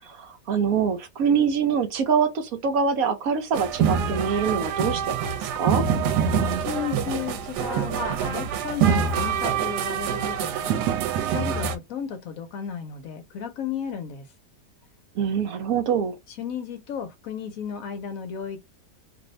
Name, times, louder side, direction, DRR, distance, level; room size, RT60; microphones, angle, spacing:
voice 1, 0.1-5.3 5.6-5.8 15.2-16.2, right 6 dB, 65° right, 1.0 m, -24 dB
sound 1, 3.5-11.8, right 7 dB, 85° right, 1.2 m, -25 dB
voice 2, 6.6-14.3 16.3-18.6, left 7 dB, 65° left, 0.9 m, -34 dB
2.7 x 2.6 x 3.0 m
omnidirectional pair, 1.8 m